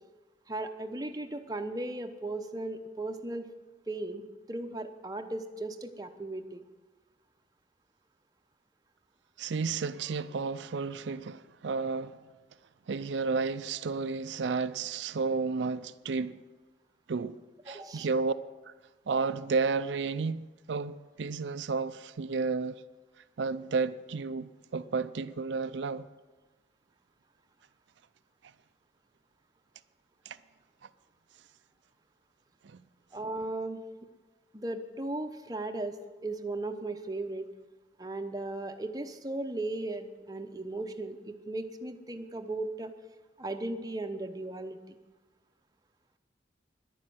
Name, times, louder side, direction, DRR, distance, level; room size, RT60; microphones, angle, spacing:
voice 1, 0.5-3.5 3.9-6.6 17.7-18.1 33.1-33.8 34.5-37.5 38.0-42.9 43.4-45.0, right 2 dB, 20° right, 0.7 m, -36 dB
voice 2, 9.4-12.2 12.9-16.4 17.1-17.4 17.7-18.3 19.1-22.8 23.4-26.1 30.3-30.4 32.6-32.8, right 4 dB, 80° right, 0.5 m, -32 dB
11.0 x 9.8 x 7.7 m
head